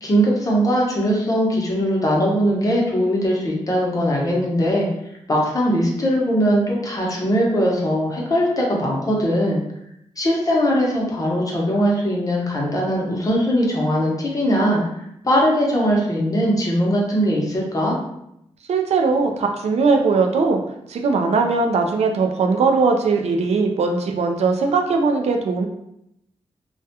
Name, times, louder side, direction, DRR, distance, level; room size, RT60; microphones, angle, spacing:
voice 1, 0.0-4.9 5.3-9.6 10.2-14.8 15.2-18.0, equal, 30° left, -3 dB, 0.7 m, -20 dB
voice 2, 18.7-20.6 20.9-25.7, right 4 dB, 70° right, 3 dB, 0.4 m, -19 dB
2.3 x 2.1 x 2.8 m, 0.78 s
wide cardioid pair, 95°, 11 cm